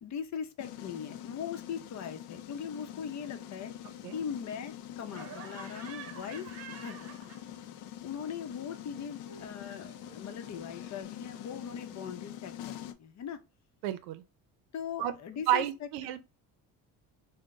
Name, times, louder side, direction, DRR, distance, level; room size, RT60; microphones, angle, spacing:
voice 1, 0.0-6.5 6.8-7.4 8.0-13.4 14.7-15.9, left 7 dB, 50° left, 0.7 m, -40 dB
sound 1, 0.6-12.9, left 11 dB, 85° left, 0.6 m, -45 dB
Laughter, 5.1-7.8 8.1-11.0, right 7 dB, 45° right, 0.9 m, -50 dB
voice 2, 13.8-14.2 15.0-15.1 15.5-16.3, right 12 dB, 90° right, 0.6 m, -31 dB
3.7 x 2.2 x 3.7 m
cardioid pair, 95°, 36 cm